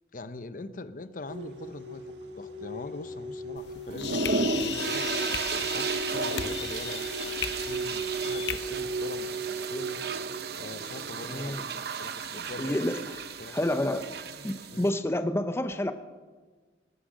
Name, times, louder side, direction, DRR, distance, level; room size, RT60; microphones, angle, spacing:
voice 1, 0.1-5.0 5.6-7.1 7.6-10.0 10.5-12.9 13.4-13.6 14.7-14.9, left 2 dB, 50° left, 12 dB, 0.7 m, -42 dB
sound 1, 1.3-10.4, right 2 dB, 85° right, 1.5 m, -37 dB
sound 2, 3.6-8.6, left 8 dB, 80° left, 1.0 m, -37 dB
sound 3, 3.9-14.9, right 4 dB, 65° right, 0.8 m, -34 dB
voice 2, 11.2-11.6 12.6-13.2 13.5-14.1 14.4-15.9, left 1 dB, 15° left, 10 dB, 0.6 m, -29 dB
19.5 x 9.9 x 6.4 m, 1.4 s
head